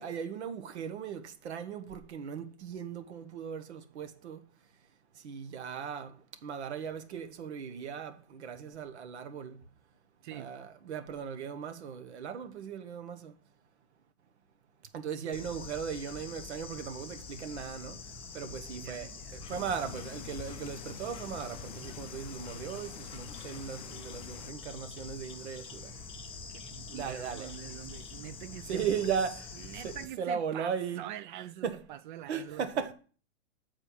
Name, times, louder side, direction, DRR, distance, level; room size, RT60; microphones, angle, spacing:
voice 1, 0.0-4.4 5.1-9.6 10.3-13.3 14.9-18.0 18.3-25.9 26.9-27.6 28.7-29.5 29.8-31.0 31.6-31.8 32.3-32.9, right 7 dB, 80° right, 1.2 m, -37 dB
Bird / Insect, 15.3-30.1, left 5 dB, 15° left, 1.0 m, -45 dB
voice 2, 18.8-19.4 26.5-28.9 29.6-32.9, right 12 dB, 50° right, 0.4 m, -45 dB
sound 1, 19.5-24.5, left 14 dB, 45° left, 0.4 m, -47 dB
7.9 x 4.4 x 6.1 m
hypercardioid pair, 125°, 33 cm